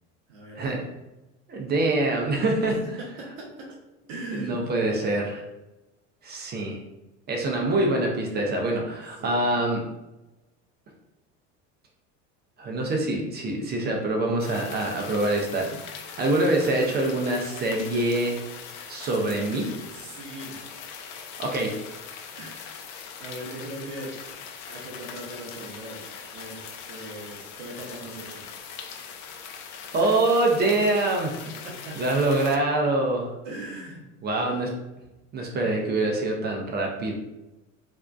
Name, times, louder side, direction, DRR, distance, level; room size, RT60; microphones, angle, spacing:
voice 1, 0.3-0.8 2.7-3.8 4.1-4.6 6.5-6.7 9.2-9.4 19.9-20.6 22.3-22.8 23.2-24.1 24.7-26.0 26.3-28.4 31.4-32.2 33.4-34.6 35.6-35.7, right 1 dB, 75° right, -2 dB, 0.7 m, -40 dB
voice 2, 1.5-2.8 4.3-5.4 6.2-6.8 7.3-9.8 12.6-18.4 18.9-19.7 21.4-21.8 29.9-31.4 32.0-33.3 34.2-34.7 35.3-37.2, right 2 dB, 25° right, 0 dB, 0.4 m, -25 dB
sound 1, 14.4-32.6, left 6 dB, 45° left, 0.4 m, -41 dB
2.5 x 2.1 x 2.3 m, 0.99 s
hypercardioid pair, 85°, 38 cm